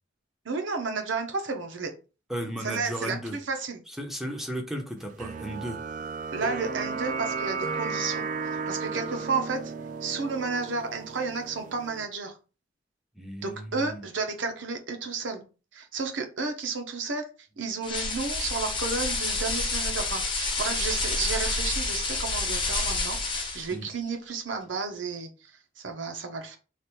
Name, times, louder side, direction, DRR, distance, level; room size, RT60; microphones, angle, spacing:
voice 1, 0.4-1.9 2.6-3.8 6.3-9.7 10.0-12.3 13.4-15.4 15.7-17.3 17.6-26.6, right 4 dB, 75° right, 5 dB, 0.8 m, -32 dB
voice 2, 2.3-3.4 4.0-5.8 13.2-14.0 23.7-23.9, equal, ahead, 2 dB, 0.7 m, -35 dB
sound 1, 5.2-12.1, right 4 dB, 40° right, 0.3 m, -34 dB
sound 2, 17.8-23.7, left 3 dB, 25° left, 1.0 m, -29 dB
3.3 x 2.5 x 4.3 m, 0.33 s
head